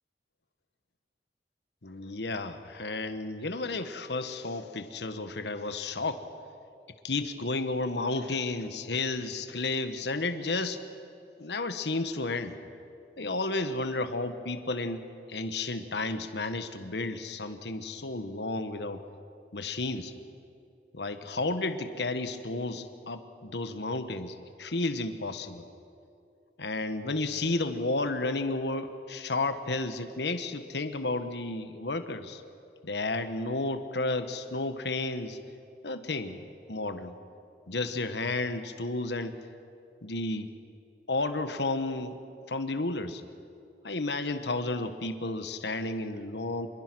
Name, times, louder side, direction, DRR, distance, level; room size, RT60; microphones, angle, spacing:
voice 1, 1.8-6.2 7.0-10.8 11.4-12.6 13.2-15.0 15.3-19.0 19.5-20.1 20.9-25.6 26.6-32.4 32.8-35.4 35.8-37.1 37.7-39.4 40.0-40.5 41.1-42.2 42.5-43.2 43.8-46.7, left 2 dB, 85° left, 9 dB, 1.3 m, -32 dB
26.5 x 22.0 x 6.2 m, 2.6 s
head